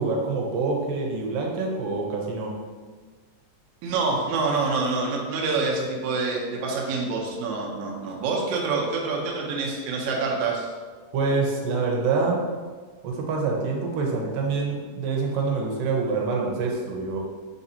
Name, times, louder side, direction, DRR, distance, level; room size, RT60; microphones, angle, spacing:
voice 1, 0.0-2.6 11.1-12.4 13.0-17.2, right 4 dB, 90° right, -1 dB, 2.4 m, -26 dB
voice 2, 3.8-10.7, right 3 dB, 75° right, -2 dB, 2.0 m, -26 dB
5.1 x 3.8 x 2.7 m, 1.5 s
omnidirectional pair, 3.8 m